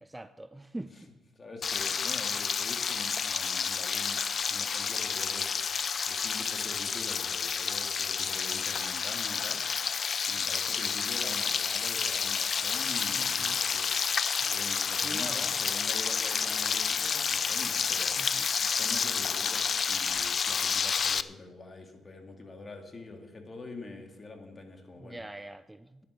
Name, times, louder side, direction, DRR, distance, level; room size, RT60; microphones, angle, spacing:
voice 1, 0.0-0.9 13.2-13.6 14.4-14.6 15.0-15.7 18.2-18.5 25.0-26.0, right 1 dB, 10° right, 0.5 m, -43 dB
voice 2, 1.3-5.8 6.1-9.8 10.3-14.1 14.5-18.2 18.5-25.2, left 3 dB, 30° left, 2.4 m, -45 dB
Frying (food), 1.6-21.2, left 6 dB, 45° left, 0.5 m, -30 dB
11.5 x 10.5 x 6.5 m
cardioid pair, 90°, 0 cm